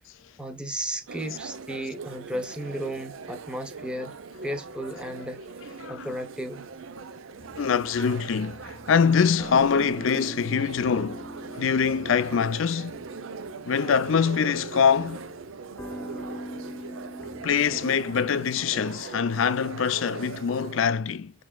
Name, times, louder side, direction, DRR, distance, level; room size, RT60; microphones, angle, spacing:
voice 1, 0.4-4.1 4.4-6.6, right 1 dB, 5° right, 0.9 m, -34 dB
sound 1, 1.1-20.8, right 4 dB, 80° right, 0.6 m, -40 dB
sound 2, 7.4-18.4, equal, 10° left, 0.5 m, -43 dB
voice 2, 7.6-13.0 13.7-15.3 17.4-21.3, left 6 dB, 70° left, 0.4 m, -24 dB
5.9 x 3.8 x 2.3 m
head